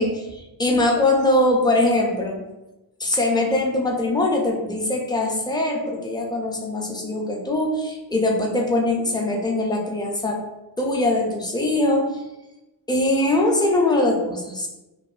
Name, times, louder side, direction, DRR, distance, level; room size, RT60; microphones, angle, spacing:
voice 1, 0.0-2.4 3.0-10.4 10.8-12.2 12.9-14.7, left 2 dB, 10° left, -1 dB, 0.4 m, -22 dB
3.0 x 2.1 x 2.4 m, 1.0 s
wide cardioid pair, 95°, 46 cm